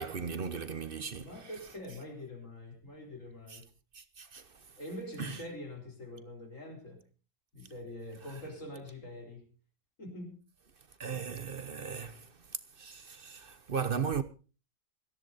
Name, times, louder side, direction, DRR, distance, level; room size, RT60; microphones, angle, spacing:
voice 1, 0.0-1.3 3.9-4.4 5.2-5.4 11.0-12.3 12.8-14.2, right 6 dB, 50° right, 1.0 m, -36 dB
voice 2, 1.2-3.7 4.8-7.0 7.5-9.5 10.0-10.4, left 1 dB, 80° left, 4.4 m, -44 dB
17.5 x 14.0 x 4.1 m
omnidirectional pair, 1.3 m